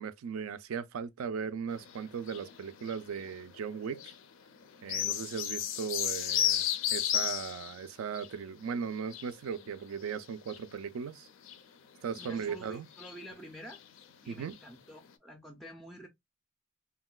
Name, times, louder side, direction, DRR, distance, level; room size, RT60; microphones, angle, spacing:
voice 1, 0.0-4.0 4.8-6.6 6.9-11.3 12.0-12.9 14.3-14.5, right 6 dB, 85° right, 0.3 m, -37 dB
sound 1, 1.7-4.2 4.5-7.8 8.1-10.9 11.4-11.6 11.9-12.6 12.9-13.4 13.7-14.1 14.4-14.6 15.1-15.2, left 10 dB, 70° left, 0.4 m, -34 dB
voice 2, 12.1-13.8 14.2-16.1, equal, ahead, 0.3 m, -48 dB
3.6 x 2.2 x 2.2 m
head